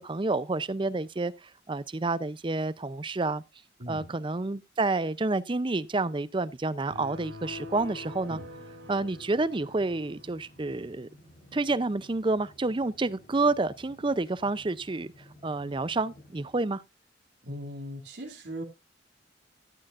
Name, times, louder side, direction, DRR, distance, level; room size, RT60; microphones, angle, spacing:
voice 1, 0.0-3.4 3.9-8.4 8.9-11.1 11.5-15.1 15.4-16.8, right 3 dB, 25° right, 0.5 m, -29 dB
voice 2, 3.8-4.1 8.3-8.5 17.4-18.6, equal, 65° right, 2.5 m, -39 dB
sound 1, 6.9-10.4, left 2 dB, 90° right, 4.0 m, -45 dB
sound 2, 7.4-16.6, left 1 dB, 55° left, 4.8 m, -55 dB
14.0 x 9.0 x 2.5 m
head